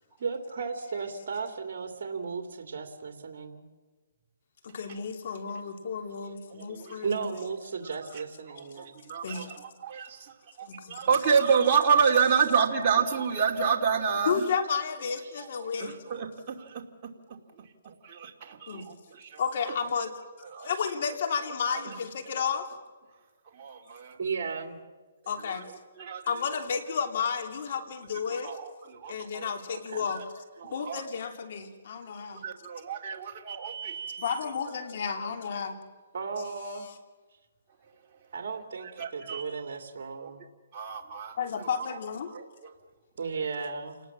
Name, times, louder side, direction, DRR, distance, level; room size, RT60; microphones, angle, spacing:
voice 1, 0.2-3.7 6.9-9.0 15.3-15.4 19.1-19.2 24.2-24.8 29.8-30.1 36.1-36.9 38.3-40.4 43.2-44.0, right 5 dB, 55° right, 5 dB, 2.8 m, -35 dB
voice 2, 4.6-7.3 9.2-9.5 10.6-11.0 14.3-16.0 18.7-18.9 19.4-20.2 20.6-22.7 25.3-25.7 26.3-28.6 29.1-30.2 30.6-32.4 34.2-35.8 41.4-42.3, left 6 dB, 55° left, 6 dB, 3.0 m, -32 dB
voice 3, 6.5-7.0 8.5-14.4 15.6-16.8 17.8-19.4 20.5-20.7 21.8-21.9 23.5-24.2 25.5-25.6 26.0-26.2 28.3-29.5 30.1-30.2 30.6-31.0 32.4-34.3 39.0-39.4 40.2-40.3 40.7-41.3 41.6-41.7 42.3-42.7, right 6 dB, 30° right, -1 dB, 2.6 m, -29 dB
29.0 x 19.5 x 7.4 m, 1.3 s
hypercardioid pair, 155°, 0 cm